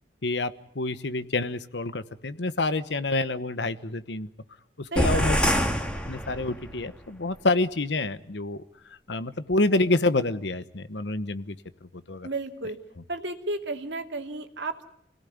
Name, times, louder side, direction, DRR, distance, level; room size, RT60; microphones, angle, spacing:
voice 1, 0.2-4.3 4.8-5.4 6.1-8.6 8.9-11.6 12.1-12.3, left 2 dB, 75° left, 13 dB, 1.1 m, -27 dB
voice 2, 4.9-5.5 12.2-12.8 13.1-14.8, right 2 dB, 80° right, 5 dB, 2.6 m, -33 dB
sound 1, 5.0-6.8, equal, 5° left, 2.0 m, -25 dB
28.0 x 17.5 x 9.5 m, 0.77 s
head